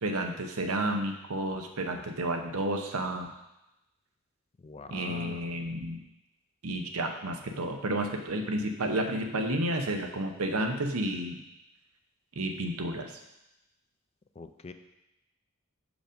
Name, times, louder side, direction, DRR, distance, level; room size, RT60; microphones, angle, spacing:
voice 1, 0.0-3.3 4.9-6.0 6.6-11.4 12.4-13.2, right 1 dB, 90° right, 4 dB, 0.9 m, -31 dB
voice 2, 4.6-5.5 14.4-14.7, left 3 dB, 30° left, 8 dB, 0.4 m, -43 dB
6.3 x 5.0 x 5.2 m, 0.93 s
head